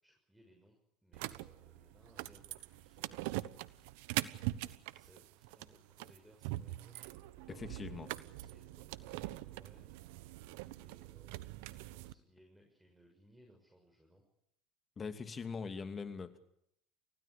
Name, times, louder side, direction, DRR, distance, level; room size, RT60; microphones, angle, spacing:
voice 1, 0.0-3.2 4.4-7.0 7.7-10.0 10.7-11.4 11.9-14.2, equal, 5° right, 2 dB, 6.6 m, -65 dB
sound 1, 1.1-12.1, right 17 dB, 70° right, 1.1 m, -43 dB
voice 2, 7.5-8.1 15.0-16.4, left 5 dB, 30° left, 8 dB, 2.7 m, -42 dB
29.5 x 16.0 x 8.6 m, 0.76 s
hypercardioid pair, 85°, 0 cm